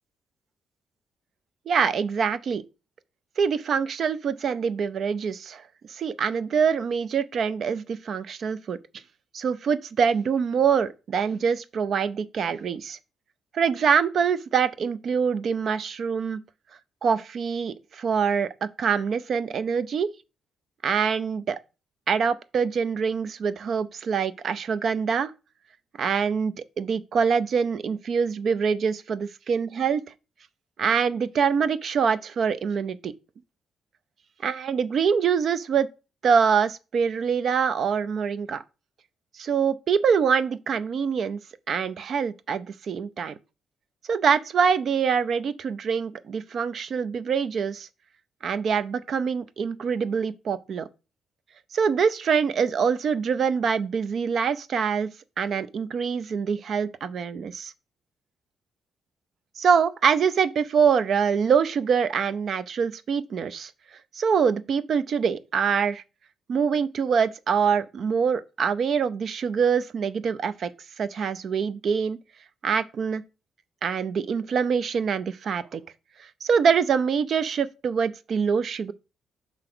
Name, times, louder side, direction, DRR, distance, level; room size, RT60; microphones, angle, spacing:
voice 1, 1.7-2.6 3.4-5.6 5.9-8.8 9.3-13.0 13.5-16.4 17.0-20.1 20.8-21.6 22.1-25.3 26.0-30.0 30.8-33.1 34.4-35.9 36.2-38.6 39.3-41.4 41.7-43.3 44.1-47.9 48.4-50.9 51.7-55.1 55.4-57.7 59.6-63.7 64.1-66.0 66.5-70.7 71.0-72.2 72.6-73.2 73.8-75.8 76.2-78.9, right 6 dB, 50° right, 0.5 m, -24 dB
5.9 x 4.9 x 6.0 m
cardioid pair, 150°, 0 cm